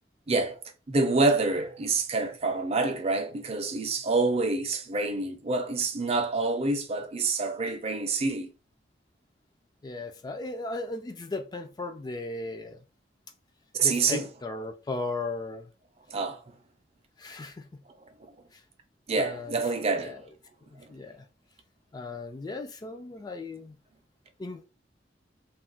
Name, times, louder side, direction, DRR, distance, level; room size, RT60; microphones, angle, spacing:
voice 1, 0.3-0.6 0.9-8.5 13.7-14.3 16.1-16.4 19.1-20.2 20.8-20.9, right 3 dB, 35° right, 0.5 m, -27 dB
voice 2, 9.8-12.8 13.8-15.7 17.2-17.7 18.5-18.6 19.2-19.6 20.0-20.2 20.7-21.2 21.9-23.8 24.4-24.7, left 2 dB, 25° left, 0.3 m, -36 dB
2.4 x 2.1 x 3.7 m
head